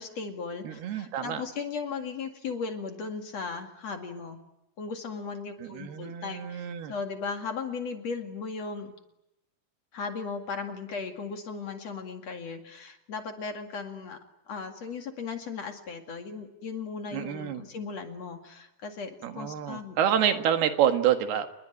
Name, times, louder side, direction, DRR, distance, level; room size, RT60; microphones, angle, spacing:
voice 1, 0.0-4.4 4.8-8.9 9.9-14.2 14.5-20.0, left 5 dB, 50° left, 5 dB, 2.9 m, -37 dB
voice 2, 0.6-1.4 5.6-6.9 17.1-17.6 19.2-21.5, right 9 dB, 85° right, 7 dB, 3.6 m, -27 dB
29.0 x 21.5 x 9.2 m, 0.88 s
omnidirectional pair, 4.5 m